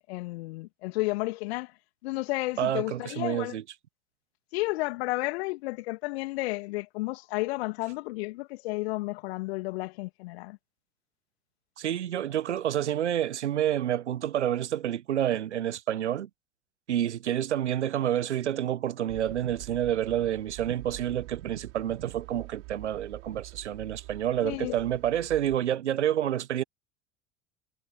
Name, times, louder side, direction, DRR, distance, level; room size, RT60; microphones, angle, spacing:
voice 1, 0.0-1.7 2.0-3.6 4.5-10.6 24.4-24.8, left 22 dB, 60° left, 2.3 m, -32 dB
voice 2, 2.6-3.6 11.8-16.3 16.9-26.6, right 11 dB, 75° right, 1.2 m, -29 dB
sound 1, 19.1-25.6, right 30 dB, 55° right, 6.9 m, -46 dB
figure-of-eight pair, 70°, 35 cm